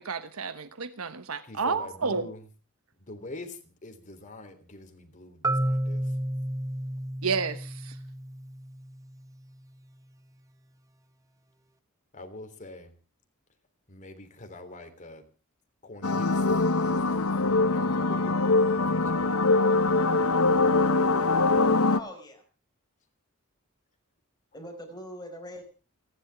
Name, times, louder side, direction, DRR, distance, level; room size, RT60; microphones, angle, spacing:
voice 1, 0.0-2.3 7.2-8.0, right 5 dB, 80° right, 1.2 m, -31 dB
voice 2, 1.4-2.4 3.0-6.0 12.1-12.9 13.9-15.2 15.8-16.4 17.5-18.6 18.8-19.1, left 2 dB, 35° left, 3.4 m, -44 dB
Marimba xylophone, 5.4-9.3, right 1 dB, 15° right, 0.9 m, -31 dB
sound 1, 16.0-22.0, left 3 dB, 80° left, 1.0 m, -23 dB
voice 3, 21.9-22.4 24.5-25.6, left 1 dB, 20° left, 5.1 m, -42 dB
29.0 x 11.5 x 3.5 m
head